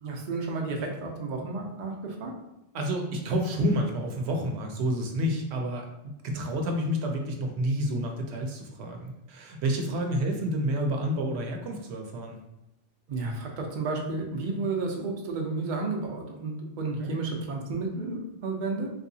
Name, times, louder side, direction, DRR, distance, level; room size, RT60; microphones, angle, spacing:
voice 1, 0.0-2.3 13.1-18.9, right 3 dB, 55° right, 1 dB, 0.7 m, -32 dB
voice 2, 2.7-5.9 6.2-12.4 17.0-17.2, equal, 90° right, 2 dB, 0.9 m, -29 dB
3.3 x 2.8 x 2.7 m, 0.89 s
omnidirectional pair, 1.1 m